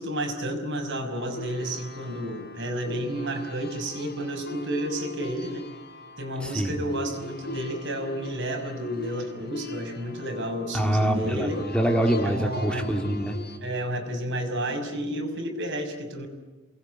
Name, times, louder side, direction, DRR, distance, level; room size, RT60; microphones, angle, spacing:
voice 1, 0.0-5.6 6.2-11.6 12.2-12.9 13.6-16.3, right 1 dB, 65° right, 4 dB, 5.6 m, -31 dB
sound 1, 0.8-13.6, left 2 dB, 50° left, 4.2 m, -42 dB
voice 2, 6.4-6.8 10.7-13.4, right 1 dB, 5° left, 2 dB, 3.3 m, -25 dB
28.5 x 21.5 x 9.4 m, 1.2 s
head